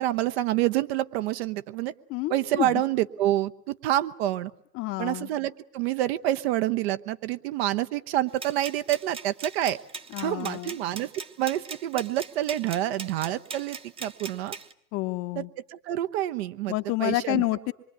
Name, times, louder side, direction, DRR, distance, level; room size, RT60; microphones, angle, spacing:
voice 1, 0.0-1.9 2.3-4.5 5.0-9.8 10.2-14.6 15.4-16.7 17.0-17.4, right 13 dB, 40° right, 13 dB, 1.0 m, -27 dB
voice 2, 2.1-2.8 4.7-5.3 10.1-10.7 14.9-15.5 16.7-17.7, left 18 dB, 25° left, 10 dB, 1.1 m, -29 dB
sound 1, 8.4-14.7, right 5 dB, 10° right, 1.1 m, -40 dB
26.0 x 23.5 x 9.5 m, 0.69 s
hypercardioid pair, 120°, 49 cm